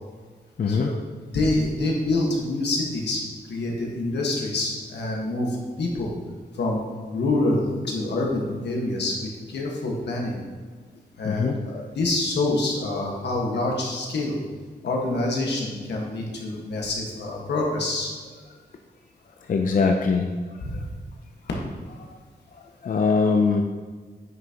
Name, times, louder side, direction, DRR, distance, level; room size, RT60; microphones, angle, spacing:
voice 1, 0.6-0.9 11.2-11.5 19.5-20.4 20.7-20.8 22.8-23.6, left 4 dB, 50° left, 3 dB, 0.5 m, -22 dB
voice 2, 1.3-6.1 6.5-6.8 7.1-10.4 11.2-14.4 14.8-18.1 20.6-20.8, left 2 dB, 85° left, -1 dB, 1.5 m, -26 dB
9.2 x 6.1 x 2.9 m, 1.5 s
wide cardioid pair, 95°, 17 cm